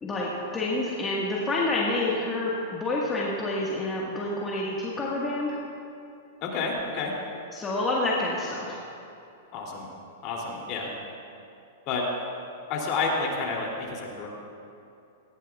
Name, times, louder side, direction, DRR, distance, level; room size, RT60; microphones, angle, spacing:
voice 1, 0.0-5.6 7.5-8.8, left 2 dB, 15° left, -5 dB, 1.5 m, -28 dB
voice 2, 6.4-7.1 9.5-9.9 10.2-10.9 11.9-12.1 12.7-14.3, left 4 dB, 40° left, -1 dB, 2.7 m, -29 dB
18.5 x 15.5 x 2.4 m, 2.6 s
hypercardioid pair, 145°, 0 cm